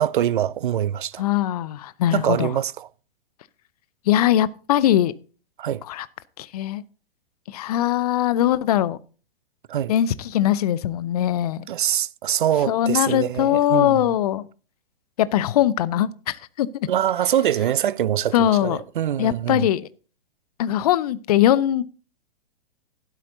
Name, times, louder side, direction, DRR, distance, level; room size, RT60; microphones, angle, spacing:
voice 1, 0.0-1.2 2.1-2.9 5.6-5.8 9.7-9.9 11.7-14.2 16.9-19.7, right 10 dB, 55° right, 0.5 m, -24 dB
voice 2, 1.2-2.5 4.1-5.1 5.9-6.1 6.4-6.8 7.5-9.0 9.9-11.7 12.7-14.5 15.2-16.7 18.3-18.8 19.2-19.8 20.6-21.8, left 12 dB, 40° left, 0.6 m, -21 dB
12.0 x 11.5 x 2.7 m
figure-of-eight pair, 110°, 30 cm